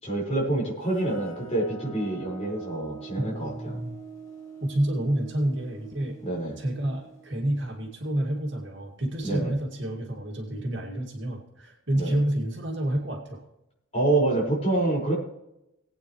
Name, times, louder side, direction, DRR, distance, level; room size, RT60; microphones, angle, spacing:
voice 1, 0.0-3.8 6.2-6.5 9.2-9.5 12.0-12.2 13.9-15.1, right 2 dB, 30° left, -4 dB, 5.2 m, -27 dB
sound 1, 0.8-8.3, right 5 dB, 15° left, 3.7 m, -45 dB
voice 2, 3.2-4.0 4.6-6.2 6.6-13.4, right 1 dB, 55° right, 0 dB, 2.4 m, -29 dB
19.5 x 9.1 x 3.2 m, 0.86 s
head